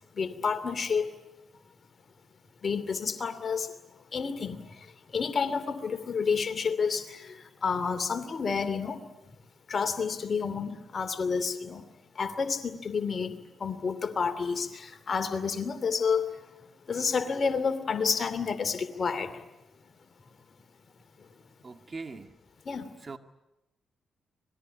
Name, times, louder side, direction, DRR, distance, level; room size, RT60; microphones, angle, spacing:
voice 1, 0.2-1.1 2.6-3.7 4.1-4.6 5.1-9.0 9.7-11.8 12.2-13.3 13.6-16.3 16.9-19.3 22.7-22.9, left 5 dB, 45° left, 2.8 m, -29 dB
voice 2, 21.6-22.3 23.0-23.2, right 4 dB, 35° right, 2.0 m, -41 dB
26.0 x 20.5 x 10.0 m
hypercardioid pair, 40°, 0 cm